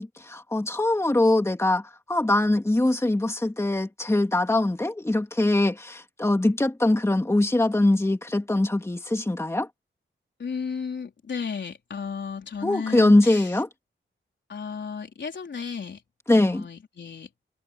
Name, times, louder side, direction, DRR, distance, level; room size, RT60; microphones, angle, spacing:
voice 1, 0.0-9.7 12.6-13.7 16.3-16.7, left 2 dB, 15° left, 2.4 m, -22 dB
voice 2, 10.4-13.5 14.5-16.0 16.3-17.3, left 6 dB, 60° left, 4.3 m, -34 dB
wide cardioid pair, 170°, 21 cm